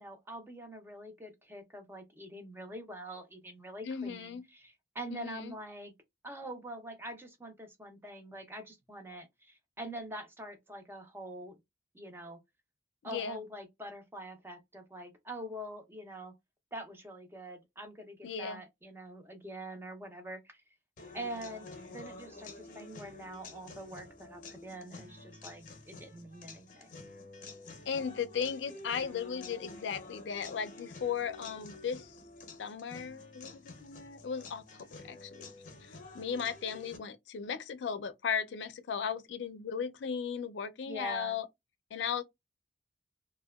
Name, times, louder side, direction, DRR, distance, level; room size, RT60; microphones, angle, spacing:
voice 1, 0.0-5.9 6.2-11.6 11.9-12.4 13.0-16.3 16.7-20.6 21.1-27.0 40.9-41.4, right 1 dB, 15° right, 0.5 m, -45 dB
voice 2, 3.9-4.4 5.1-5.5 13.0-13.4 18.2-18.6 27.9-32.1 32.6-34.6 34.9-35.5 35.8-41.5 41.9-42.2, left 7 dB, 85° left, 0.4 m, -36 dB
sound 1, 21.0-37.0, left 3 dB, 50° left, 0.7 m, -49 dB
2.7 x 2.1 x 2.2 m
head